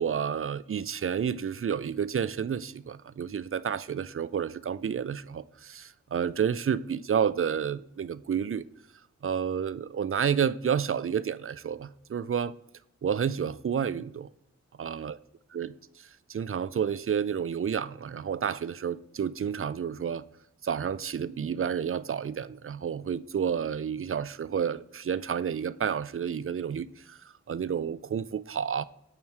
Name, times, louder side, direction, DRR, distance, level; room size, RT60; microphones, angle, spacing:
voice 1, 0.0-8.6 9.2-12.5 13.0-14.3 14.8-15.2 15.5-15.7 16.3-20.2 20.6-27.2 27.5-28.8, right 7 dB, 45° right, 0.4 m, -30 dB
8.8 x 3.1 x 5.8 m
wide cardioid pair, 55°, 30 cm